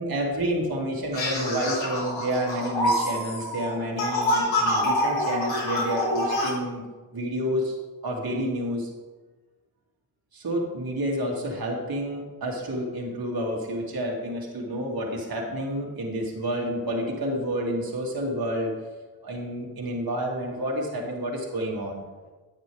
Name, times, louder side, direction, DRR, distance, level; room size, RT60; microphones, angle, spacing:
voice 1, 0.0-6.9 7.1-7.8 8.0-8.9 10.3-18.7 19.2-22.0, equal, 50° right, -2 dB, 2.9 m, -29 dB
sound 1, 1.1-6.5, left 1 dB, 80° left, 3.0 m, -26 dB
10.0 x 9.2 x 3.6 m, 1.3 s
cardioid pair, 60°, 45 cm